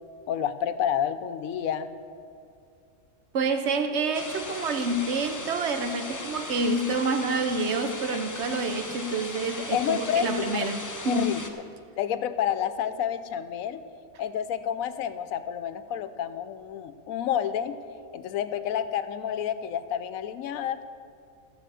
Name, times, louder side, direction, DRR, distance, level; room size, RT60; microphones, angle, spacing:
voice 1, 0.3-1.9 9.5-10.3 10.6-10.7 11.0-11.4 12.0-13.8 14.2-17.8 18.1-20.8, left 9 dB, 80° left, 1.0 m, -29 dB
voice 2, 3.3-11.4, right 3 dB, 55° right, 1.0 m, -28 dB
sound 1, 4.1-11.5, left 2 dB, 20° left, 0.5 m, -38 dB
14.5 x 5.6 x 7.6 m
omnidirectional pair, 1.5 m